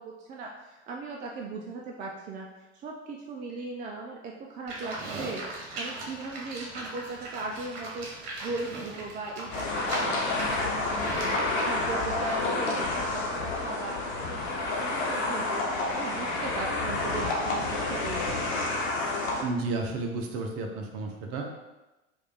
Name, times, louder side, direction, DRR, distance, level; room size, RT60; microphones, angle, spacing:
voice 1, 0.0-5.4 5.8-8.1 8.4-18.5, right 3 dB, 25° right, 0 dB, 0.4 m, -38 dB
Livestock farm animals working animals, 4.7-11.4, right 2 dB, 60° right, 1.1 m, -39 dB
sound 1, 9.5-19.4, left 2 dB, 60° left, 1.0 m, -29 dB
voice 2, 19.4-21.5, right 3 dB, 40° right, 2 dB, 0.8 m, -32 dB
4.8 x 2.5 x 3.4 m, 1.1 s
figure-of-eight pair, 75°, 36 cm